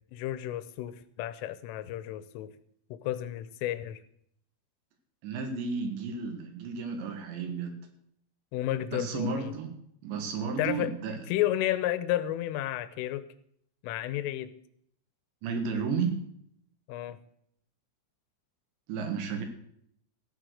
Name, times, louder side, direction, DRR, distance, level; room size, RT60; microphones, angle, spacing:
voice 1, 0.1-2.5 2.9-4.0 8.5-9.5 10.6-10.9 11.3-13.2 13.8-14.5 16.9-17.2, left 13 dB, 85° left, 14 dB, 3.3 m, -32 dB
voice 2, 5.2-7.8 8.9-9.8 10.0-11.2 15.4-16.2 18.9-19.5, right 5 dB, 70° right, 6 dB, 3.7 m, -32 dB
14.5 x 9.0 x 6.4 m, 0.69 s
omnidirectional pair, 5.8 m